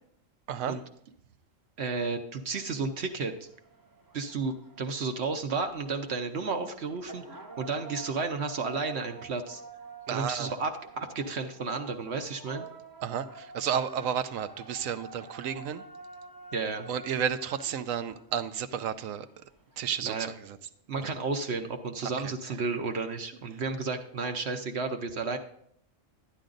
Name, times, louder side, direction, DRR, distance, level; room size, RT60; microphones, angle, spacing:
voice 1, 1.8-3.5 4.1-9.6 10.1-10.7 11.0-12.7 16.5-16.9 20.0-20.3 20.9-25.4, right 4 dB, 60° right, 6 dB, 1.0 m, -32 dB
sound 1, 2.5-20.0, right 4 dB, 20° right, 0.6 m, -49 dB
voice 2, 10.1-10.5 13.0-15.8 16.9-19.3 19.8-20.6 22.0-22.3, right 8 dB, 85° right, 12 dB, 1.1 m, -32 dB
11.5 x 10.5 x 3.9 m, 0.69 s
omnidirectional pair, 1.4 m